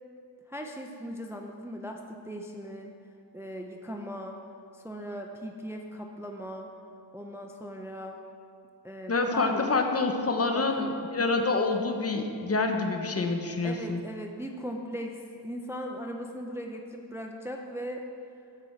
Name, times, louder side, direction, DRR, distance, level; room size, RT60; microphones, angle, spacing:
voice 1, 0.5-3.0 3.3-4.4 4.7-6.7 7.1-8.2 8.8-9.7 10.5-10.9 13.6-18.0, equal, 5° right, 2 dB, 0.4 m, -38 dB
voice 2, 9.1-14.0, left 3 dB, 35° left, 5 dB, 0.7 m, -27 dB
8.5 x 7.5 x 4.8 m, 2.5 s
wide cardioid pair, 145°, 42 cm